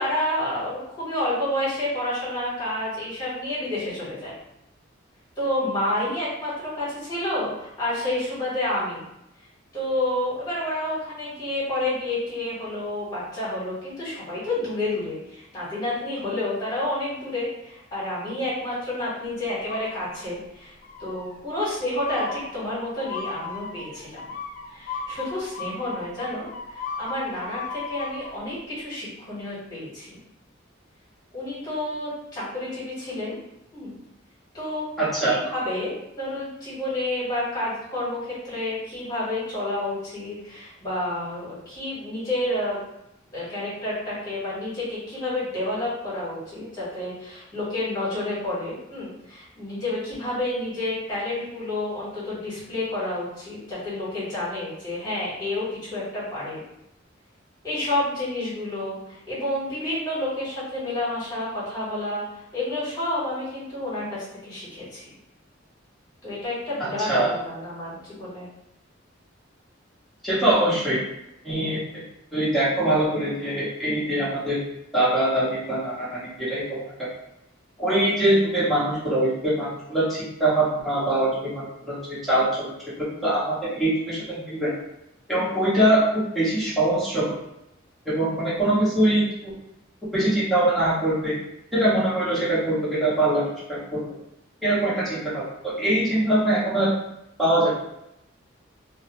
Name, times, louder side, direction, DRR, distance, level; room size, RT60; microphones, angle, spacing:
voice 1, 0.0-4.3 5.4-9.0 9.7-20.7 21.0-24.3 24.7-26.5 26.7-30.2 31.3-33.4 33.7-33.9 34.5-34.9 35.2-42.8 43.3-56.6 57.6-62.2 62.5-65.1 66.2-68.5, left 1 dB, 20° left, -10 dB, 1.4 m, -29 dB
sound 1, 19.7-20.4 20.8-21.4 22.1-28.4, left 4 dB, 40° left, 0.3 m, -36 dB
voice 2, 35.0-35.4 67.1-67.4 70.2-71.0 71.4-72.0 72.3-74.6 74.9-76.2 76.5-76.8 77.8-84.7 85.3-86.0 86.3-87.3 88.0-89.5 90.1-91.4 91.7-94.1 94.6-96.9 97.4-97.7, right 1 dB, ahead, -11 dB, 1.1 m, -23 dB
2.6 x 2.1 x 3.0 m, 0.83 s
head